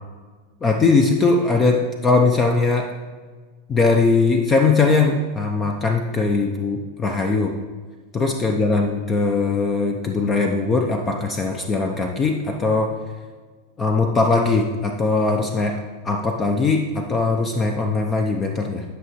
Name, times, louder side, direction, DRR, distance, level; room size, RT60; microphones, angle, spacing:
voice 1, 0.6-2.9 3.7-7.5 8.1-12.9 13.8-18.8, left 3 dB, 25° left, 3 dB, 0.7 m, -20 dB
11.0 x 5.7 x 3.1 m, 1.5 s
hypercardioid pair, 100°, 0 cm